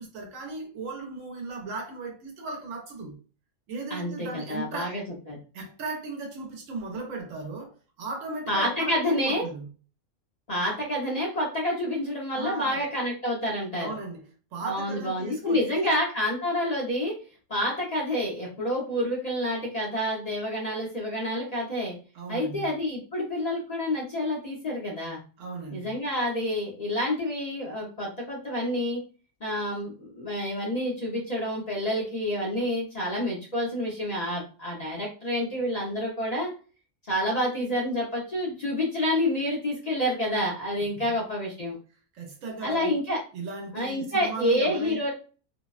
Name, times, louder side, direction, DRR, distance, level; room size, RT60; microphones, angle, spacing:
voice 1, 0.0-3.2 3.7-5.0 5.5-9.7 12.3-12.9 13.8-14.2 14.5-15.9 22.1-22.7 25.4-26.0 41.0-41.2 42.1-43.0 43.3-45.0, right 3 dB, 80° right, 1.1 m, -36 dB
voice 2, 3.9-5.4 8.5-9.4 10.5-13.9 14.6-17.2 17.5-21.9 22.3-25.2 25.7-29.0 29.4-36.5 37.1-41.8 42.6-43.2 43.7-45.1, left 1 dB, 40° left, 0.7 m, -28 dB
2.7 x 2.1 x 2.3 m
omnidirectional pair, 1.3 m